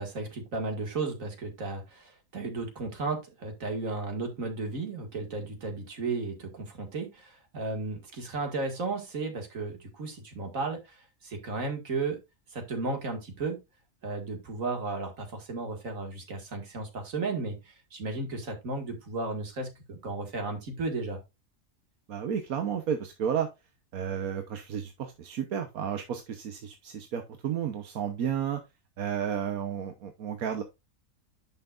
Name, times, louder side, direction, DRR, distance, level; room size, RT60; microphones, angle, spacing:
voice 1, 0.0-12.2 12.5-13.6 14.0-21.2, right 3 dB, 70° right, 4 dB, 2.4 m, -34 dB
voice 2, 22.1-23.5 23.9-28.6 29.0-30.6, right 8 dB, 85° right, 6 dB, 1.4 m, -32 dB
10.5 x 5.7 x 2.5 m, 0.23 s
omnidirectional pair, 1.5 m